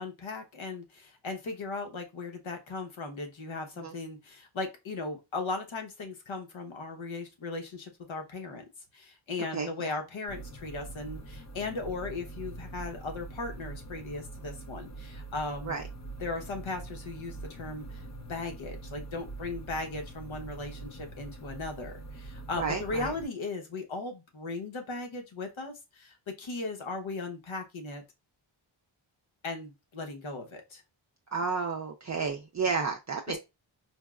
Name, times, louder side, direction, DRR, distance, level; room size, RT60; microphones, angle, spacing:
voice 1, 0.0-8.6 8.9-15.8 16.2-18.0 18.3-28.0 29.4-30.8 33.3-33.4, left 3 dB, 70° left, 4 dB, 1.1 m, -37 dB
voice 2, 9.5-9.9 15.7-15.8 22.6-23.2 31.3-33.4, right 5 dB, 35° right, 3 dB, 0.5 m, -32 dB
sound 1, 10.3-23.2, right 2 dB, 35° left, 0.7 m, -44 dB
4.5 x 2.1 x 2.3 m, 0.24 s
cardioid pair, 55°, 49 cm